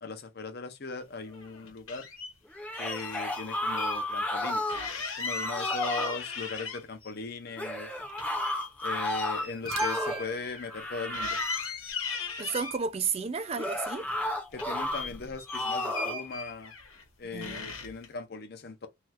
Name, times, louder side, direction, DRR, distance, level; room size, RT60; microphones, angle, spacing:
voice 1, 0.0-2.1 2.8-7.9 8.8-11.6 14.5-16.7 17.2-18.9, left 4 dB, 50° left, 0.6 m, -39 dB
sound 1, 1.3-2.3 2.7-4.0 4.3-4.4 4.7-7.1 7.5-10.9 11.1-12.8 13.4-14.2 14.5-17.0 17.4-18.1, left 4 dB, 75° left, 1.1 m, -38 dB
sound 2, 2.5-4.9 5.3-6.2 7.6-10.3 10.7-11.7 13.6-15.1 15.5-16.2, left 1 dB, 5° left, 0.7 m, -32 dB
sound 3, 9.5-12.0 14.5-15.4, right 2 dB, 80° right, 0.8 m, -42 dB
voice 2, 12.4-14.1 17.3-17.7, right 5 dB, 30° right, 0.3 m, -32 dB
2.8 x 2.3 x 3.2 m
head